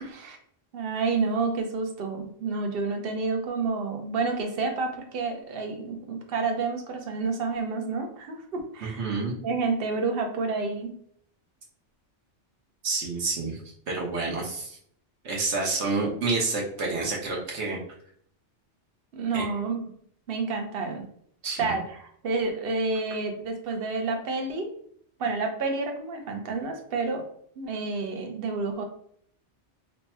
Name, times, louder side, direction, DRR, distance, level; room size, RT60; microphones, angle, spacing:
voice 1, 0.0-0.4 0.7-9.1 9.4-10.9 19.1-19.8 20.3-21.0 21.6-24.7 25.2-27.2 27.6-28.8, right 4 dB, 60° right, 4 dB, 0.8 m, -29 dB
voice 2, 8.8-9.3 12.8-13.6 13.9-14.8 15.2-17.8 19.3-19.5 21.4-21.8, right 3 dB, 75° right, -2 dB, 1.2 m, -29 dB
3.3 x 2.2 x 4.1 m, 0.63 s
omnidirectional pair, 1.2 m